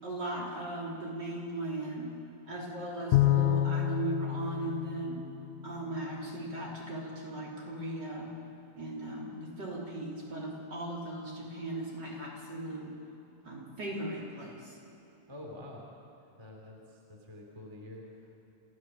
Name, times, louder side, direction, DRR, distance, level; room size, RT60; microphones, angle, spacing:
voice 1, 0.0-2.2 2.5-5.3 5.6-8.3 8.8-13.0 13.4-14.8, right 2 dB, 30° right, -3 dB, 3.6 m, -38 dB
Bowed string instrument, 3.1-5.7, left 13 dB, 85° left, 1.7 m, -28 dB
voice 2, 15.3-15.9 16.4-18.4, left 1 dB, 10° right, 0 dB, 2.1 m, -47 dB
27.5 x 15.5 x 7.3 m, 3.0 s
omnidirectional pair, 4.1 m